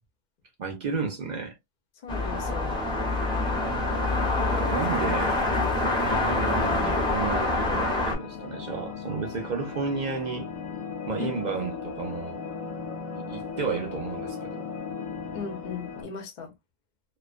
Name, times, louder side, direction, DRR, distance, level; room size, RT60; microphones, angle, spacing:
voice 1, 0.6-1.6 4.5-5.4 6.0-10.5 11.1-12.4 13.1-14.7, right 5 dB, 65° right, 0.4 m, -32 dB
voice 2, 2.0-2.8 11.2-11.3 15.3-16.5, left 5 dB, 50° left, 0.6 m, -37 dB
sound 1, 2.1-8.1, left 2 dB, 5° left, 0.5 m, -26 dB
sound 2, 3.3-16.0, left 6 dB, 80° left, 1.0 m, -38 dB
2.4 x 2.2 x 2.4 m
omnidirectional pair, 1.4 m